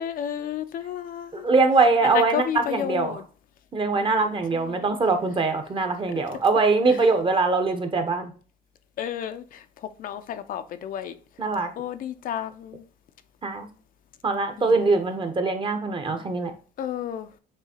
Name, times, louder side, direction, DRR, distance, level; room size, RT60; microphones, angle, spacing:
voice 1, 0.0-1.5 2.0-3.2 4.0-4.3 4.5-4.8 6.3-6.4 6.9-7.0 9.0-9.6 10.0-11.2 11.8-12.8 14.6-14.7 16.8-17.3, left 10 dB, 55° left, 0.5 m, -32 dB
voice 2, 1.3-3.2 3.7-8.3 11.4-11.7 13.4-13.7 14.2-16.5, right 3 dB, 30° right, 0.8 m, -22 dB
6.7 x 2.8 x 2.8 m
cardioid pair, 110°, 17 cm